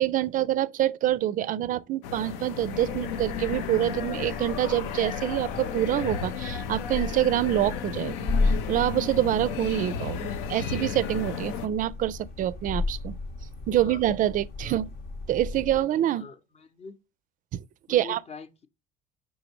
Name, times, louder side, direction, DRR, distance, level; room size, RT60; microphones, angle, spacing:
voice 1, 0.0-13.2 13.7-14.9 15.3-16.2 17.5-17.6 17.9-18.2, right 12 dB, 50° right, 0.4 m, -26 dB
sound 1, 2.0-11.7, left 8 dB, 85° left, 0.5 m, -34 dB
sound 2, 2.6-15.8, left 3 dB, 65° left, 0.9 m, -34 dB
voice 2, 16.1-17.0 17.9-18.7, left 5 dB, 35° left, 0.7 m, -44 dB
5.0 x 3.6 x 3.0 m
supercardioid pair, 90°, 18 cm